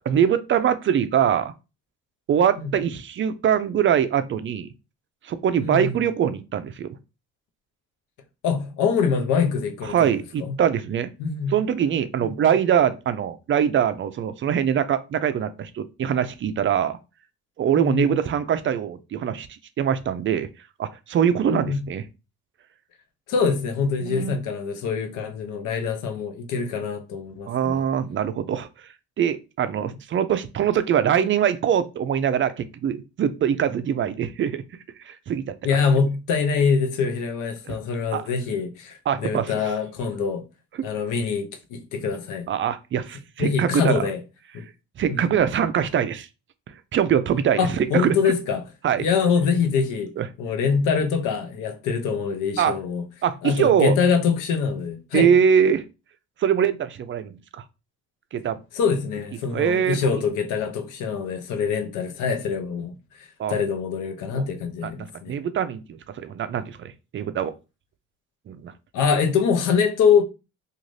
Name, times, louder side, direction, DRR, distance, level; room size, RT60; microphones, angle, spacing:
voice 1, 0.1-1.5 2.3-4.7 5.2-6.9 9.9-11.1 11.5-17.0 17.6-20.5 20.8-22.0 24.0-24.4 27.5-28.7 29.2-34.6 35.0-35.8 37.7-37.8 38.1-38.2 39.1-39.5 42.5-44.0 45.0-46.3 46.9-48.1 48.8-49.1 50.2-50.3 52.6-52.7 53.2-53.9 55.1-55.8 56.4-57.6 58.3-58.6 59.5-60.0 63.4-63.5 64.3-64.5 64.8-64.9 65.3-67.5 68.5-68.7, right 8 dB, 40° right, 0.4 m, -23 dB
voice 2, 5.6-6.0 8.4-10.1 10.4-10.6 11.2-11.6 12.2-12.3 17.7-18.1 21.5-21.9 23.3-27.8 35.6-40.4 40.8-42.5 43.4-44.2 44.5-44.7 45.1-45.2 47.6-48.6 49.0-53.0 53.4-55.3 58.7-65.3 68.9-70.2, left 6 dB, 90° left, 0.6 m, -24 dB
2.5 x 2.4 x 3.1 m
cardioid pair, 90°, 30 cm